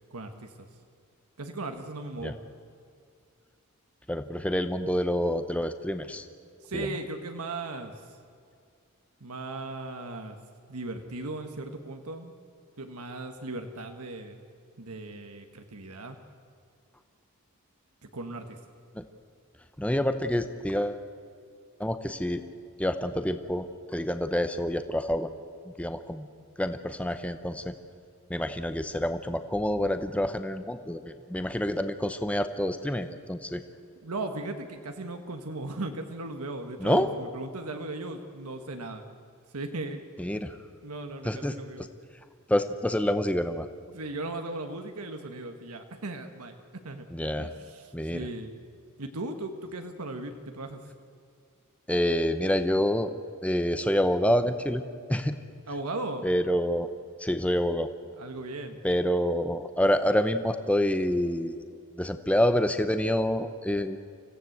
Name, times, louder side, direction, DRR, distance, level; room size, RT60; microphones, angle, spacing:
voice 1, 0.1-0.7 1.4-2.4 6.6-7.9 9.2-10.4 10.7-12.3 12.8-14.4 14.8-16.2 18.0-18.6 34.0-39.0 39.5-40.0 40.3-40.4 40.8-41.9 43.9-47.1 47.4-48.6 49.0-50.8 55.7-56.3 58.2-58.8, right 2 dB, 85° right, 6 dB, 1.5 m, -37 dB
voice 2, 4.1-6.3 6.7-6.9 19.0-19.1 19.8-21.0 21.8-22.4 22.8-23.7 23.9-25.3 25.8-26.3 26.6-27.7 28.3-31.0 31.3-33.6 36.8-37.1 40.2-40.5 41.2-41.5 42.5-43.7 47.1-47.5 47.9-48.3 51.9-53.1 53.4-54.8 55.1-55.3 56.2-56.9 57.2-57.9 58.8-61.6 62.0-64.0, left 1 dB, 5° left, 9 dB, 0.7 m, -27 dB
25.5 x 16.0 x 8.0 m, 2.3 s
head